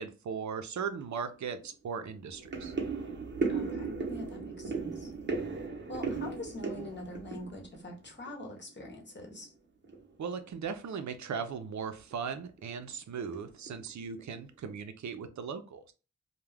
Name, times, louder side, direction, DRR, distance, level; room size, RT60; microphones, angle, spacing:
voice 1, 0.0-2.7 10.2-15.9, right 6 dB, 65° right, 0.5 m, -38 dB
sound 1, 1.0-1.1 1.5-1.7 2.0-8.6 8.8-9.5 9.8-10.1 10.4-10.5 10.9-11.1 11.4-11.6 12.1-12.6 13.2-13.4 13.7-14.4 14.7-14.8, right 4 dB, 35° right, 0.8 m, -36 dB
voice 2, 3.5-5.1 5.9-9.5, left 2 dB, 35° left, 0.9 m, -44 dB
2.3 x 2.1 x 3.2 m
cardioid pair, 60°, 30 cm